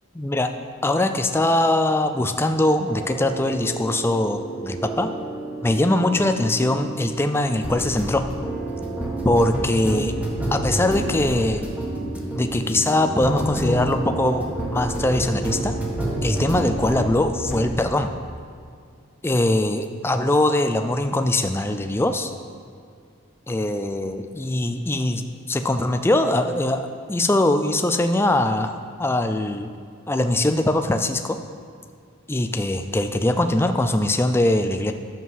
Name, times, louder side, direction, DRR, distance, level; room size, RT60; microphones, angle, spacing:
voice 1, 0.2-0.5 0.8-5.1 5.6-8.3 9.2-10.1 10.5-11.6 12.4-15.7 16.2-18.1 19.2-22.3 23.5-25.2 25.5-28.7 29.0-29.7 30.1-31.4 32.3-34.9, left 1 dB, 10° left, 7 dB, 0.4 m, -22 dB
sound 1, 2.8-17.1 17.4-17.8, right 1 dB, 5° right, 1.4 m, -29 dB
11.0 x 7.5 x 5.5 m, 2.2 s
head